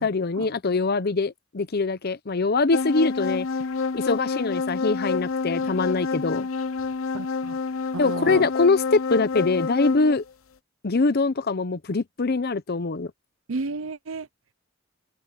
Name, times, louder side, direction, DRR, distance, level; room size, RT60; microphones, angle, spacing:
voice 1, 0.0-3.5 3.9-6.5 8.0-10.2 10.8-13.1, left 3 dB, 50° left, 0.7 m, -23 dB
sound 1, 2.7-10.2, left 4 dB, 90° left, 0.9 m, -28 dB
voice 2, 7.1-7.6 7.9-8.5 13.5-14.3, right 3 dB, 85° right, 0.7 m, -32 dB
open air
head